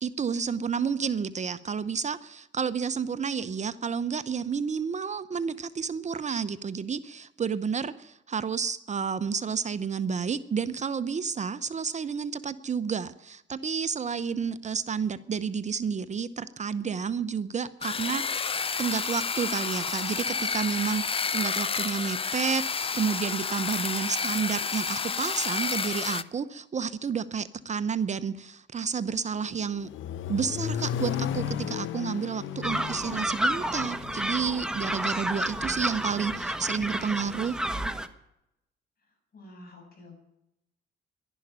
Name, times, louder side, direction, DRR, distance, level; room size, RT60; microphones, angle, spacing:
voice 1, 0.0-21.0 21.3-29.9 30.3-37.6, right 6 dB, 35° right, 14 dB, 0.8 m, -30 dB
sound 1, 17.8-26.2, left 5 dB, 30° left, 0.6 m, -30 dB
voice 2, 24.2-24.6 39.3-40.2, left 2 dB, 50° left, 3 dB, 7.5 m, -49 dB
Accelerating revving vroom, 29.3-35.4, left 9 dB, 80° left, 0.9 m, -35 dB
sound 2, 32.6-38.1, right 1 dB, 5° right, 1.2 m, -30 dB
12.0 x 11.0 x 9.4 m, 0.84 s
cardioid pair, 90°, 20 cm